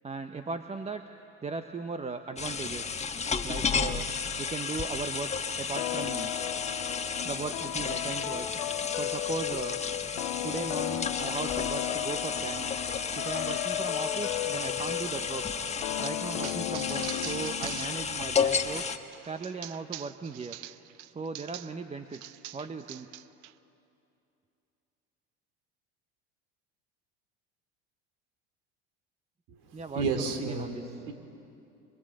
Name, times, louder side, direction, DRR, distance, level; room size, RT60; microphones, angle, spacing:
voice 1, 0.0-1.0 1.4-2.9 3.4-4.1 4.4-6.3 7.2-8.6 9.0-9.8 10.4-12.8 13.2-15.5 16.0-18.9 19.3-20.6 21.1-23.1 29.7-30.0 30.4-30.9, right 4 dB, 20° right, 8 dB, 0.9 m, -37 dB
sound 1, 2.4-19.0, left 5 dB, 20° left, 1.2 m, -33 dB
sound 2, 5.8-18.2, left 14 dB, 85° left, 0.9 m, -35 dB
sound 3, 16.4-21.8 22.1-23.5, right 15 dB, 85° right, 0.7 m, -43 dB
voice 2, 29.5-31.1, right 4 dB, 70° right, 6 dB, 3.1 m, -33 dB
25.0 x 23.0 x 7.8 m, 2.7 s
supercardioid pair, 95°, 33 cm